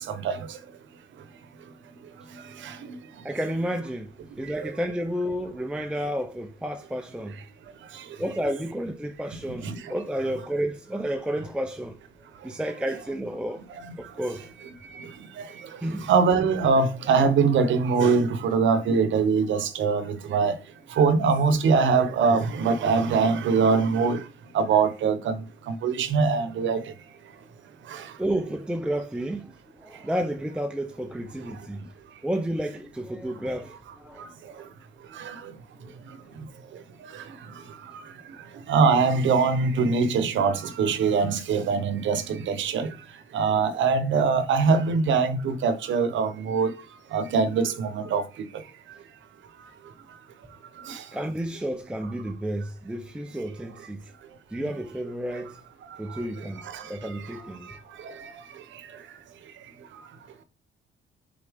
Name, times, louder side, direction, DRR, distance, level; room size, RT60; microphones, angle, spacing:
voice 1, 3.2-4.1 4.4-7.4 8.2-12.0 12.4-13.6 14.0-14.5 15.8-16.1 28.2-31.9 32.2-34.3 35.8-36.0 51.1-54.1 54.5-55.6 56.0-57.7, right 1 dB, 5° right, 0.5 m, -31 dB
voice 2, 16.1-20.6 21.0-24.2 24.5-25.4 25.7-26.8 27.9-28.0 38.7-42.9 43.3-46.7 47.1-48.2 50.9-51.0, right 5 dB, 70° right, 0.9 m, -22 dB
7.1 x 3.8 x 3.6 m
cardioid pair, 90°, 20 cm